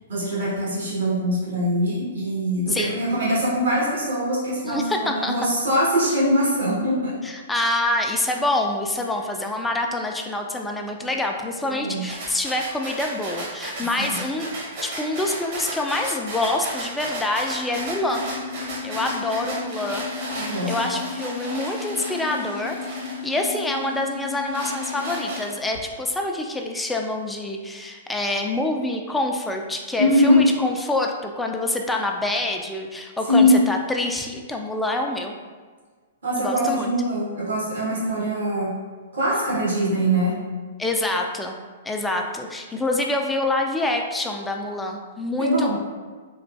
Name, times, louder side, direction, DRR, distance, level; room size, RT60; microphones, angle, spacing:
voice 1, 0.1-7.1 11.6-12.1 14.0-14.2 20.3-20.7 30.0-30.4 33.3-33.7 36.2-38.7 39.1-40.3 45.4-45.8, equal, 70° right, -8 dB, 1.5 m, -22 dB
voice 2, 2.7-3.0 4.7-5.3 7.2-14.5 14.8-18.2 18.8-20.1 20.4-35.3 36.4-36.9 40.8-41.5 41.8-45.8, left 2 dB, 10° left, 2 dB, 0.3 m, -26 dB
sound 1, 12.1-23.8 24.2-25.8, right 1 dB, 50° right, 1.1 m, -34 dB
sound 2, 18.0-25.4, left 6 dB, 85° left, 0.6 m, -35 dB
3.4 x 3.0 x 2.5 m, 1.5 s
figure-of-eight pair, 115°, 0 cm